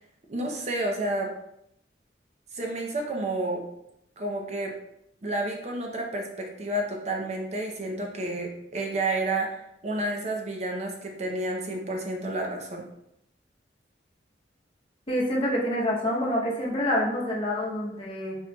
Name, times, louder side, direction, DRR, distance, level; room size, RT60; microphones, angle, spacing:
voice 1, 0.3-1.3 2.5-3.6 4.2-4.7 5.2-12.8, right 2 dB, 40° right, 1 dB, 0.6 m, -30 dB
voice 2, 15.1-18.4, equal, 30° left, -3 dB, 0.8 m, -27 dB
4.4 x 4.2 x 2.3 m, 0.78 s
head